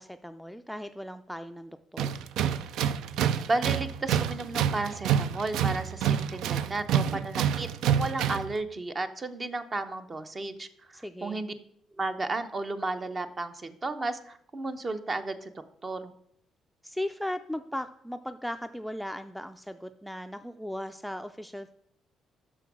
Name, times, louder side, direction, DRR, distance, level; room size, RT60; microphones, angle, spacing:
voice 1, 0.0-2.1 10.9-11.5 16.8-21.7, left 1 dB, ahead, 8 dB, 0.4 m, -37 dB
Tools, 2.0-8.6, right 9 dB, 80° right, 0.3 m, -28 dB
voice 2, 3.5-11.5 12.0-15.5 15.8-16.1, right 2 dB, 30° right, 9 dB, 0.7 m, -33 dB
6.1 x 5.6 x 6.1 m, 0.71 s
cardioid pair, 85°, 0 cm